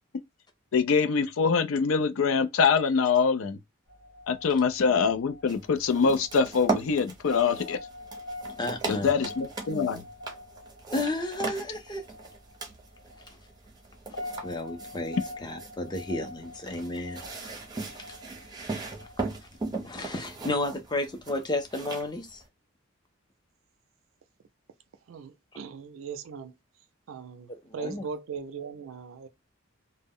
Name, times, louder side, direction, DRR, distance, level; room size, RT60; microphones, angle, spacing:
voice 1, 0.7-3.6 4.3-7.8 8.9-10.0, left 5 dB, 75° left, 0.4 m, -24 dB
sound 1, 3.9-20.3, left 1 dB, 60° left, 0.8 m, -45 dB
sound 2, 5.5-22.5, right 3 dB, 20° right, 0.6 m, -38 dB
voice 2, 8.6-9.1 10.9-12.0 14.4-17.3 19.8-22.4 27.5-28.1, left 2 dB, 20° left, 0.5 m, -32 dB
voice 3, 25.1-26.5 27.1-29.3, right 6 dB, 70° right, 0.4 m, -39 dB
2.1 x 2.0 x 3.6 m
head